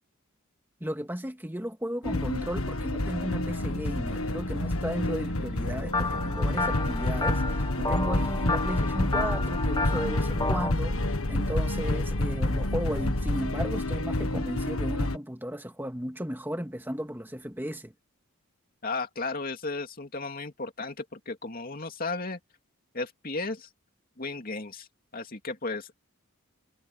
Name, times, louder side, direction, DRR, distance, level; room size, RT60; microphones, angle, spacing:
voice 1, 0.8-17.9, equal, 10° right, 2.1 m, -35 dB
sound 1, 2.0-15.2, left 1 dB, 80° left, 1.8 m, -28 dB
sound 2, 5.9-10.7, left 3 dB, 20° left, 1.1 m, -32 dB
voice 2, 18.8-22.4 22.9-23.7 24.2-24.9 25.1-25.9, left 3 dB, 40° left, 2.7 m, -34 dB
head